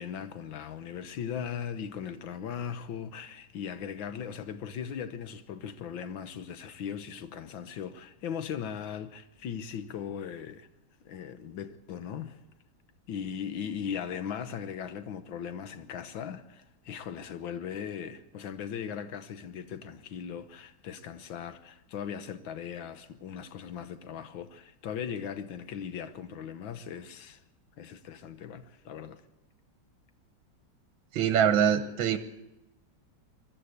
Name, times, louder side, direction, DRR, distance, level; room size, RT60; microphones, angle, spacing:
voice 1, 0.0-10.7 11.0-12.4 13.1-27.4 27.8-29.2, left 8 dB, 85° left, 1.7 m, -38 dB
voice 2, 31.1-32.2, right 8 dB, 80° right, 1.8 m, -24 dB
23.0 x 14.0 x 8.3 m
omnidirectional pair, 2.1 m